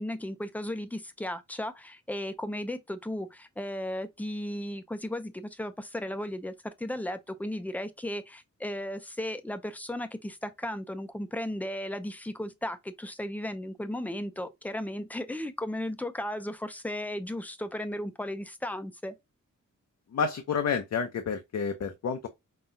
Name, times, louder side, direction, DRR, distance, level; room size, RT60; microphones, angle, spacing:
voice 1, 0.0-19.1, left 1 dB, 5° left, 0.5 m, -35 dB
voice 2, 20.1-22.3, left 6 dB, 55° left, 0.6 m, -29 dB
5.5 x 2.3 x 2.6 m
wide cardioid pair, 135°, 30 cm